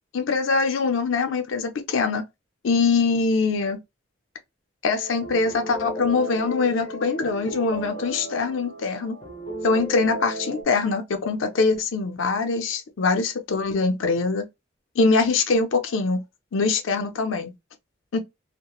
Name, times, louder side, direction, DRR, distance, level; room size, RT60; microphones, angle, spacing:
voice 1, 0.1-2.2 2.6-3.8 4.8-9.2 9.6-14.4 15.0-16.2 16.5-17.5 18.1-18.2, left 4 dB, 90° left, 0.5 m, -23 dB
sound 1, 4.9-10.6, right 1 dB, 30° left, 0.8 m, -34 dB
2.9 x 2.1 x 2.3 m
head